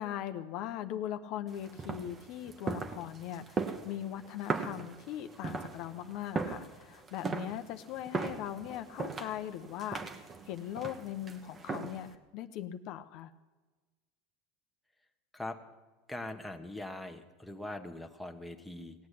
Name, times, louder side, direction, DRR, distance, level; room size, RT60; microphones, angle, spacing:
voice 1, 0.0-13.3, left 11 dB, 60° left, 9 dB, 0.8 m, -40 dB
sound 1, 1.5-12.1, right 4 dB, 25° right, 1.2 m, -39 dB
voice 2, 16.1-18.9, left 1 dB, ahead, 3 dB, 1.3 m, -41 dB
17.5 x 8.5 x 8.4 m, 1.2 s
supercardioid pair, 115°, 0 cm